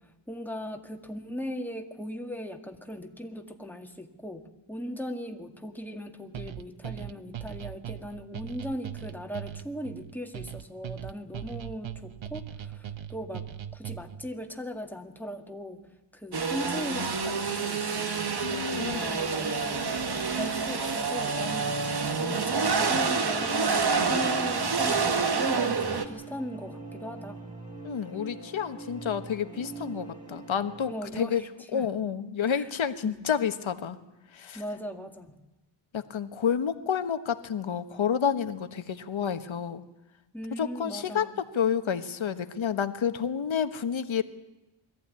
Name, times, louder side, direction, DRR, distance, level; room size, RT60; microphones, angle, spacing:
voice 1, 0.3-15.8 16.1-19.8 20.3-27.4 30.9-31.5 31.7-31.9 32.5-32.6 33.0-33.2 34.5-35.4 40.3-41.3, equal, 5° left, 4 dB, 2.0 m, -38 dB
sound 1, 6.3-14.3, right 10 dB, 65° right, 1.0 m, -39 dB
sound 2, 16.3-26.0, right 4 dB, 50° right, 1.8 m, -28 dB
voice 2, 18.4-19.0 27.8-31.4 31.7-34.0 34.3-34.6 35.9-39.8 40.6-44.2, left 7 dB, 70° left, 10 dB, 1.4 m, -29 dB
sound 3, 21.4-30.9, right 3 dB, 15° right, 5.7 m, -43 dB
22.0 x 14.5 x 9.7 m, 1.0 s
wide cardioid pair, 100°, 49 cm